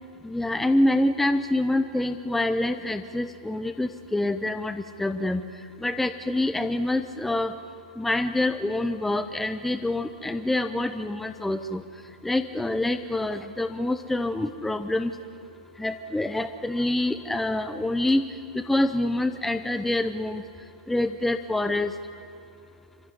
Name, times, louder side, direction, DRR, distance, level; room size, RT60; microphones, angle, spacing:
voice 1, 0.2-5.4 5.8-7.6 8.0-11.8 12.2-15.1 15.8-18.2 18.5-20.4 20.9-21.9, left 1 dB, 5° left, 10 dB, 0.7 m, -26 dB
25.5 x 15.0 x 9.8 m, 2.4 s
hypercardioid pair, 120°, 5 cm